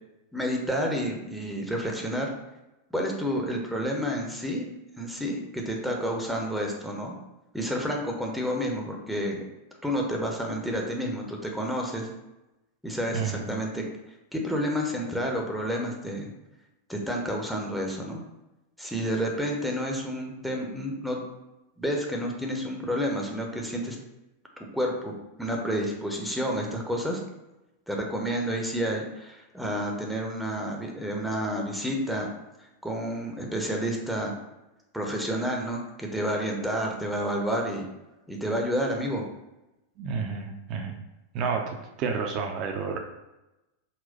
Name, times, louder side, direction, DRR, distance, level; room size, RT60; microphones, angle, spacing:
voice 1, 0.3-2.3 2.9-4.7 5.0-7.1 7.5-9.4 9.8-12.1 12.8-13.8 14.3-16.3 16.9-18.2 18.8-21.2 21.8-24.0 24.6-25.1 25.4-27.2 27.9-32.3 32.8-34.3 34.9-37.9 38.3-39.3, equal, ahead, 0 dB, 0.7 m, -30 dB
voice 2, 13.1-13.5 40.0-41.0 41.3-43.0, right 5 dB, 40° right, 3 dB, 0.5 m, -30 dB
4.1 x 2.2 x 3.9 m, 0.98 s
figure-of-eight pair, 90°, 0 cm